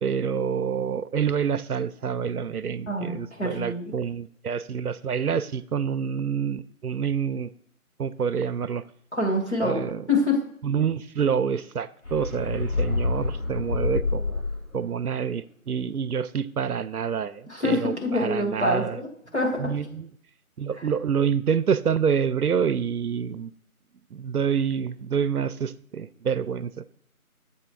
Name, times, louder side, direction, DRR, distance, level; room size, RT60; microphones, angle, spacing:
voice 1, 0.0-7.5 8.0-8.8 9.6-10.0 10.6-14.4 14.7-19.0 19.6-20.1 20.6-23.5 24.1-26.9, right 7 dB, 85° right, 15 dB, 0.5 m, -27 dB
voice 2, 2.9-3.9 9.1-9.8 10.1-10.4 17.5-19.1 19.3-19.7, left 2 dB, 50° left, -2 dB, 2.0 m, -25 dB
sound 1, 12.0-14.8, left 3 dB, 75° left, 2.7 m, -27 dB
7.6 x 3.6 x 4.4 m, 0.65 s
figure-of-eight pair, 180°, 44 cm